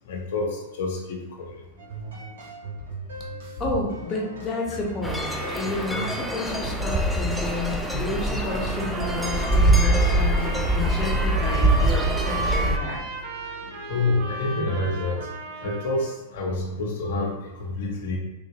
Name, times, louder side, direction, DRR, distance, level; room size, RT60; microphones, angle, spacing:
voice 1, 0.1-1.6 3.6-3.8 13.9-15.3 15.6-18.2, left 2 dB, 65° left, -1 dB, 0.7 m, -28 dB
sound 1, 1.8-15.2, right 2 dB, 75° right, 1.2 m, -39 dB
voice 2, 3.6-13.0, left 2 dB, 25° left, -1 dB, 0.9 m, -31 dB
sound 2, 5.0-12.8, right 1 dB, ahead, 0.4 m, -23 dB
sound 3, 8.3-16.1, right 3 dB, 55° right, 0.8 m, -35 dB
3.3 x 2.6 x 2.9 m, 1.1 s
hypercardioid pair, 110°, 0 cm